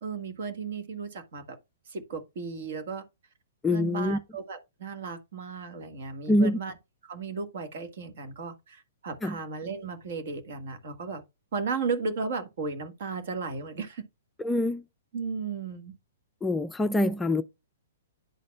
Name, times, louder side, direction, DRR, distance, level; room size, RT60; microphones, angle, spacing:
voice 1, 0.0-1.6 1.9-3.0 3.7-6.7 7.1-11.2 11.5-14.0 15.1-15.9, right 5 dB, 60° right, 1.5 m, -35 dB
voice 2, 3.6-4.2 6.3-6.6 9.2-9.4 14.4-14.8 16.4-17.4, left 1 dB, 10° left, 0.4 m, -25 dB
11.0 x 4.2 x 2.3 m
hypercardioid pair, 130°, 0 cm